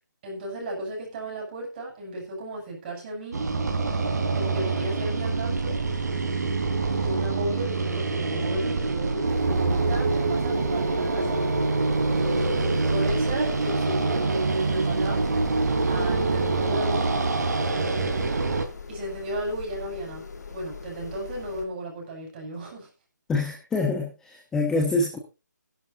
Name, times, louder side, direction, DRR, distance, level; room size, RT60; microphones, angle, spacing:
voice 1, 0.2-3.4 4.4-5.8 6.9-11.4 12.1-15.2 15.9-17.1 18.9-22.9, right 1 dB, 30° right, 0 dB, 6.9 m, -34 dB
sound 1, 3.3-18.6, right 3 dB, 60° right, 3.7 m, -25 dB
sound 2, 9.3-21.6, left 5 dB, 60° left, 2.8 m, -41 dB
voice 2, 23.3-25.2, left 3 dB, 5° left, 1 dB, 1.2 m, -26 dB
18.0 x 11.5 x 2.6 m, 0.29 s
hypercardioid pair, 165°, 10 cm